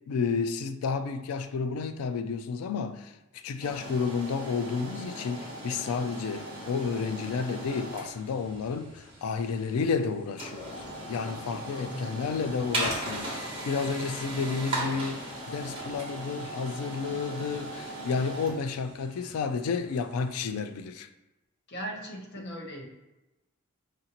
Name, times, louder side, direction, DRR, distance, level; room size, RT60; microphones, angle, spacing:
voice 1, 0.1-10.7 11.1-21.1 22.4-22.5, left 5 dB, 90° left, 0.3 m, -31 dB
sound 1, 3.6-20.5, right 1 dB, 25° right, 1.0 m, -38 dB
voice 2, 11.5-12.3 21.7-22.8, right 1 dB, 50° left, 0.8 m, -39 dB
4.9 x 2.6 x 2.9 m
head